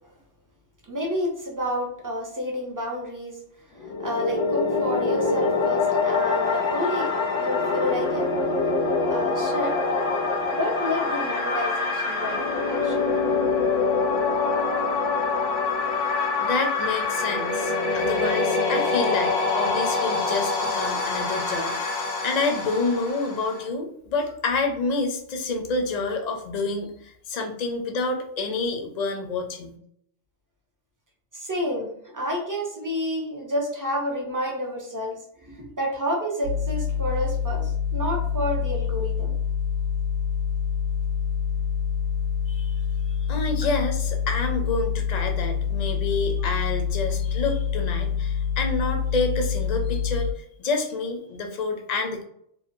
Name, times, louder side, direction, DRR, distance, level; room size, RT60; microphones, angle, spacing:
voice 1, 0.9-3.4 3.8-8.3 9.1-9.8 10.4-13.0 16.3-16.5 16.9-17.0 18.2-18.3 31.3-35.2 35.4-39.4, equal, 30° right, -1 dB, 0.3 m, -30 dB
sound 1, 3.8-23.6, left 4 dB, 85° left, 1.1 m, -25 dB
voice 2, 16.4-29.8 42.5-42.8 43.2-52.2, left 3 dB, 55° left, 3 dB, 0.5 m, -28 dB
sound 2, 36.4-50.3, left 7 dB, 70° right, 0.9 m, -26 dB
3.0 x 2.2 x 2.5 m, 0.71 s
omnidirectional pair, 1.2 m